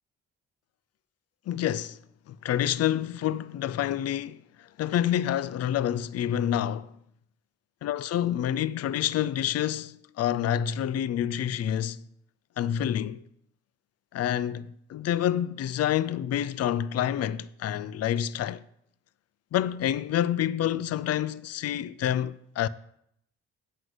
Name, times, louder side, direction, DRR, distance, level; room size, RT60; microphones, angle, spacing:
voice 1, 1.5-2.0 2.3-6.9 7.8-12.0 12.6-13.2 14.1-18.6 19.5-22.7, left 11 dB, 55° left, 0.5 m, -28 dB
7.9 x 6.5 x 7.7 m
cardioid pair, 90°, 30 cm